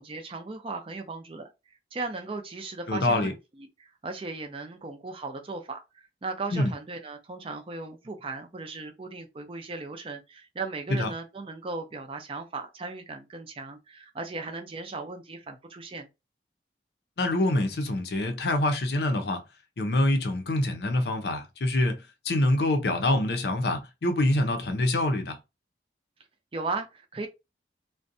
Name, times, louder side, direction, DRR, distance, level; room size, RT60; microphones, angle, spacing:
voice 1, 0.0-3.4 3.8-16.1 26.5-27.3, right 3 dB, 30° right, 0.4 m, -37 dB
voice 2, 2.9-3.3 6.5-6.7 10.9-11.1 17.2-19.4 19.8-25.4, left 1 dB, 65° left, 0.5 m, -25 dB
2.5 x 2.1 x 2.6 m
head